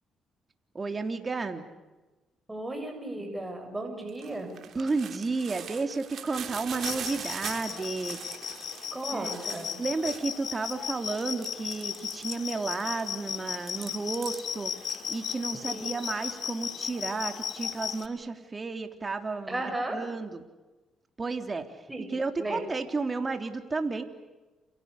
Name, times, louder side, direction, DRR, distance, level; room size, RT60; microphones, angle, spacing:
voice 1, 0.7-1.6 4.7-8.2 9.1-9.3 9.8-14.7 15.1-20.4 21.2-21.7 22.1-24.0, right 3 dB, 30° right, 6 dB, 3.5 m, -32 dB
voice 2, 2.5-4.6 8.9-9.8 15.7-16.0 19.5-20.0 21.9-22.7, right 2 dB, 10° right, 3 dB, 7.3 m, -35 dB
sound 1, 4.1-10.5 11.0-13.2 13.5-15.3, right 8 dB, 65° right, 3.6 m, -41 dB
sound 2, 6.8-18.1, left 8 dB, 65° left, 2.4 m, -36 dB
30.0 x 28.5 x 6.8 m, 1.2 s
cardioid pair, 90°, 0 cm